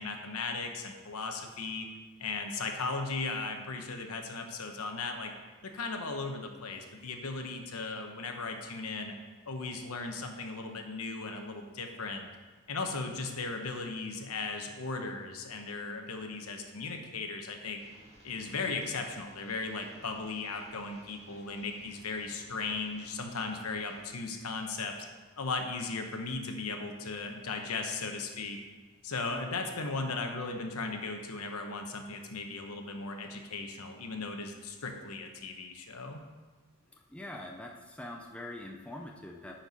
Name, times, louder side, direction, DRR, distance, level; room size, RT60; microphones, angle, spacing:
voice 1, 0.0-1.9 2.2-5.3 5.6-9.1 9.5-12.3 12.7-17.8 18.2-24.9 25.4-28.6 29.0-36.2, left 3 dB, 80° left, 4 dB, 1.0 m, -37 dB
sound 1, 17.8-24.2, equal, 30° right, 2.2 m, -58 dB
voice 2, 36.9-39.5, left 1 dB, 5° left, 1 dB, 0.5 m, -44 dB
9.2 x 4.5 x 5.5 m, 1.4 s
head